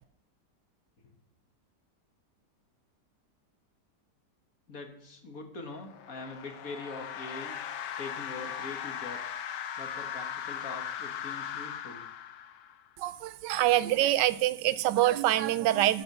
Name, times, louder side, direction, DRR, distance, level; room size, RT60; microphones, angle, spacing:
voice 1, 4.7-7.6 8.0-9.4 9.8-12.1, left 3 dB, 55° left, 4 dB, 2.0 m, -43 dB
sound 1, 5.8-12.9, left 9 dB, 85° left, 1.4 m, -38 dB
voice 2, 13.0-16.0, right 14 dB, 85° right, 16 dB, 1.2 m, -25 dB
12.5 x 5.8 x 6.8 m, 0.72 s
omnidirectional pair, 1.8 m